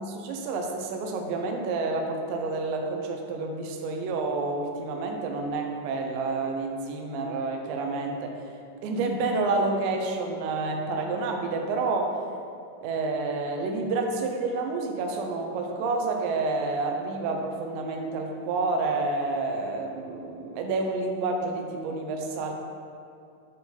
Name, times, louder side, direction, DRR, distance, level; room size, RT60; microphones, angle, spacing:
voice 1, 0.0-8.4 8.8-12.2 12.8-22.5, right 3 dB, 80° right, 2 dB, 2.8 m, -29 dB
10.0 x 3.9 x 5.3 m, 2.5 s
omnidirectional pair, 5.6 m